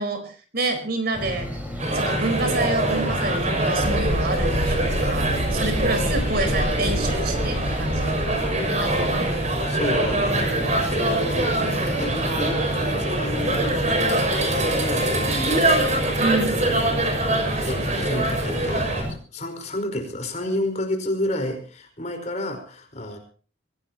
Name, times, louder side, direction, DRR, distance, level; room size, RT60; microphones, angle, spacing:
voice 1, 0.0-1.5 1.9-8.2 8.8-9.3 16.2-16.6, right 2 dB, 55° right, 7 dB, 4.6 m, -28 dB
sound 1, 1.1-19.1, equal, 10° right, 4.8 m, -33 dB
sound 2, 1.8-19.0, right 1 dB, 35° right, 6.1 m, -24 dB
sound 3, 3.8-10.0, equal, 60° left, 2.1 m, -29 dB
voice 2, 9.6-13.7 14.6-16.2 16.5-17.1 17.6-23.2, left 1 dB, 35° left, 5 dB, 4.9 m, -31 dB
23.5 x 17.5 x 3.0 m, 0.40 s
head